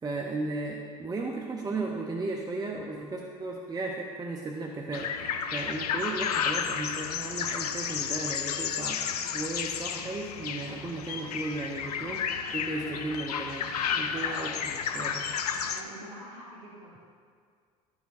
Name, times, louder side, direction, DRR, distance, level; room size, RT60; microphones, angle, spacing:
voice 1, 0.0-5.1 5.5-12.2 12.5-15.3, right 3 dB, 20° right, 0 dB, 0.7 m, -35 dB
sound 1, 4.9-15.8, left 7 dB, 85° left, 0.5 m, -32 dB
voice 2, 15.7-17.0, right 1 dB, 65° right, -7 dB, 1.5 m, -46 dB
12.5 x 4.8 x 2.6 m, 2.1 s
hypercardioid pair, 70°, 19 cm